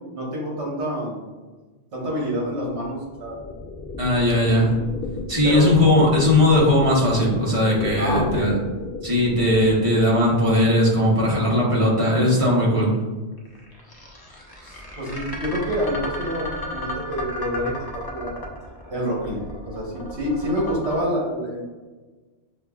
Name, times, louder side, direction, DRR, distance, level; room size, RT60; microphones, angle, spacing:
voice 1, 0.1-1.2 1.9-3.4 4.1-4.3 5.4-5.7 8.0-8.5 14.6-18.4 18.9-21.6, equal, 65° right, -3 dB, 1.3 m, -27 dB
sound 1, 2.4-12.0 13.4-21.0, left 2 dB, 40° left, 0.3 m, -34 dB
voice 2, 4.0-4.7 5.3-8.6 9.0-12.9, left 1 dB, 30° right, -5 dB, 0.8 m, -18 dB
5.4 x 2.3 x 2.3 m, 1.3 s
omnidirectional pair, 1.3 m